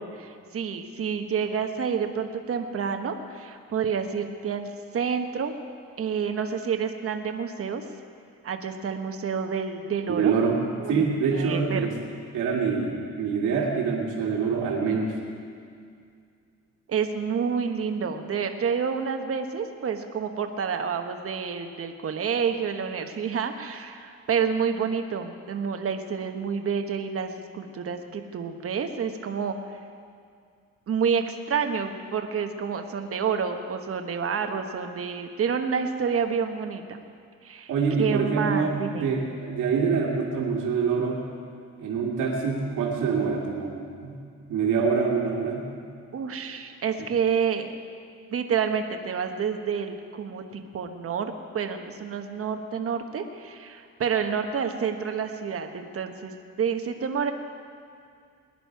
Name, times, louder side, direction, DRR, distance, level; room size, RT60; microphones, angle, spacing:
voice 1, 0.0-4.7 4.9-5.5 6.0-7.8 8.4-10.3 10.8-11.0 11.3-11.9 16.9-29.5 30.9-37.0 37.4-37.7 38.0-39.1 46.1-47.7 48.3-57.3, right 6 dB, 50° right, 6 dB, 1.2 m, -29 dB
voice 2, 10.1-10.6 10.9-11.9 12.3-15.1 37.7-41.2 41.8-44.2 44.5-45.7, right 5 dB, 80° right, -2 dB, 2.3 m, -25 dB
20.5 x 10.0 x 4.7 m, 2.3 s
cardioid pair, 90°, 30 cm